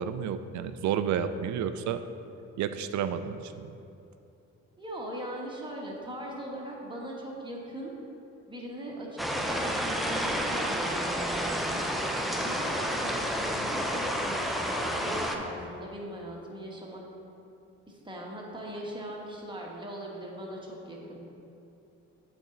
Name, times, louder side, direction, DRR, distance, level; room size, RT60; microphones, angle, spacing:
voice 1, 0.0-2.0 2.6-3.7, right 8 dB, 70° right, 10 dB, 0.4 m, -31 dB
voice 2, 4.8-7.9 8.5-11.8 12.3-17.0 17.9-21.2, equal, 15° right, -3 dB, 1.3 m, -39 dB
sound 1, 9.2-15.4, equal, ahead, 0.5 m, -30 dB
8.3 x 4.4 x 3.8 m, 2.7 s
cardioid pair, 90°, 30 cm